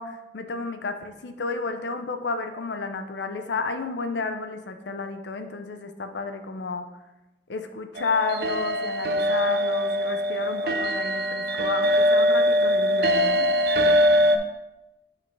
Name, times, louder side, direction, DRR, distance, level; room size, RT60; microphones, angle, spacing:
voice 1, 0.0-6.9 7.5-13.5, left 3 dB, 85° left, 7 dB, 0.6 m, -31 dB
sound 1, 8.0-14.4, equal, 60° right, 0.5 m, -22 dB
6.6 x 5.2 x 3.3 m, 1.0 s
head